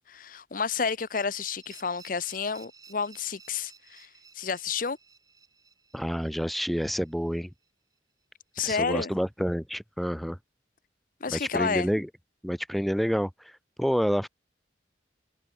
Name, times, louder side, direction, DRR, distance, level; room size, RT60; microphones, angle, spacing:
voice 1, 0.0-4.1 4.3-5.0 8.5-9.2 11.2-11.9, left 5 dB, 50° left, 0.7 m, -30 dB
sound 1, 0.9-7.7, right 5 dB, 20° right, 6.6 m, -55 dB
voice 2, 5.9-7.5 8.6-10.4 11.3-12.1 12.4-13.3 13.8-14.3, equal, ahead, 0.7 m, -28 dB
head